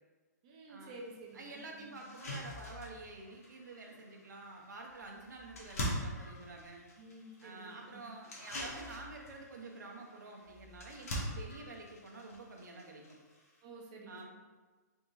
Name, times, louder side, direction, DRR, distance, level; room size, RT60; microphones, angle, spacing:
voice 1, 0.4-2.0 7.0-8.1 13.6-14.3, right 2 dB, 25° right, 0 dB, 0.4 m, -51 dB
sound 1, 0.9-1.0 1.5-1.6 2.0-13.6, equal, 55° left, 1.0 m, -44 dB
voice 2, 1.3-6.8 7.4-13.2 14.1-14.3, right 2 dB, 85° right, 0 dB, 0.7 m, -49 dB
3.6 x 2.4 x 4.0 m, 1.3 s
hypercardioid pair, 170°, 9 cm